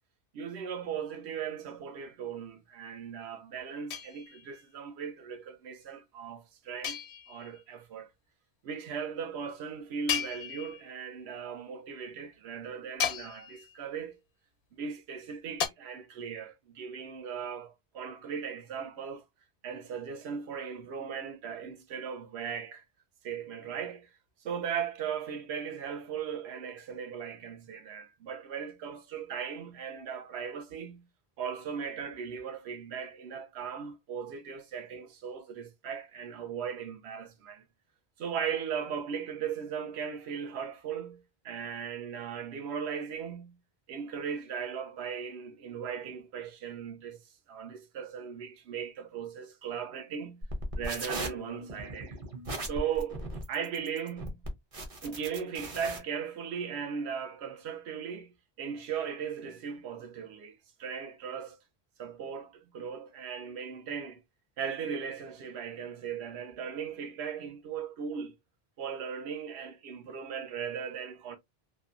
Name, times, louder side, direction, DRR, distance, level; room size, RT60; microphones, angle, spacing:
voice 1, 0.3-7.0 7.3-8.1 8.6-14.2 14.8-19.2 19.6-22.8 23.2-24.1 24.4-31.0 31.4-37.6 38.2-43.6 43.9-47.2 47.5-50.4 50.8-52.2 52.6-54.4 55.0-61.6 62.0-64.2 64.6-68.3 68.8-71.4, right 7 dB, 85° right, 0.9 m, -38 dB
sound 1, 3.9-4.6 6.8-7.6 10.1-11.0 13.0-13.8 15.6-15.7, left 8 dB, 90° left, 0.8 m, -35 dB
sound 2, 50.4-56.0, right 1 dB, 40° right, 0.7 m, -38 dB
2.7 x 2.2 x 2.4 m
omnidirectional pair, 1.1 m